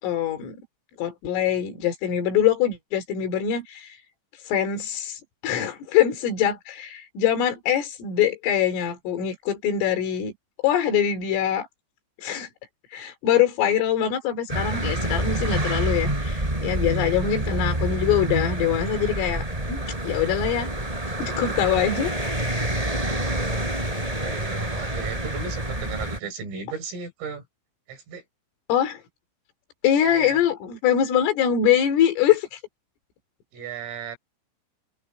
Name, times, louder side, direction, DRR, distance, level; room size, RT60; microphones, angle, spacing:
voice 1, 0.0-0.6 1.0-4.0 4.5-10.3 10.6-11.7 12.2-12.5 12.9-19.4 19.7-20.7 21.2-22.2 28.7-29.0 29.8-32.6, left 9 dB, 85° left, 6.0 m, -23 dB
sound 1, 14.5-26.2, right 1 dB, 10° right, 4.1 m, -27 dB
voice 2, 16.9-17.3 23.1-23.2 23.9-27.4 27.9-28.2 30.1-30.4 33.5-34.2, right 6 dB, 90° right, 9.2 m, -36 dB
open air
omnidirectional pair, 5.7 m